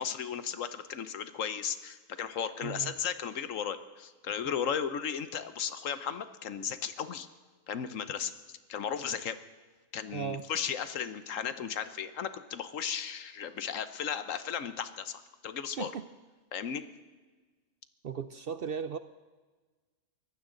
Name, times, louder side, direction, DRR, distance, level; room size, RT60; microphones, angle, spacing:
voice 1, 0.0-7.3 7.7-8.3 8.7-9.4 9.9-15.9 16.5-16.8, left 8 dB, 70° left, 12 dB, 1.2 m, -35 dB
voice 2, 2.6-2.9 10.1-10.4 15.8-16.1 18.0-19.0, right 7 dB, 55° right, 12 dB, 0.7 m, -36 dB
23.5 x 15.5 x 3.9 m, 1.3 s
omnidirectional pair, 1.4 m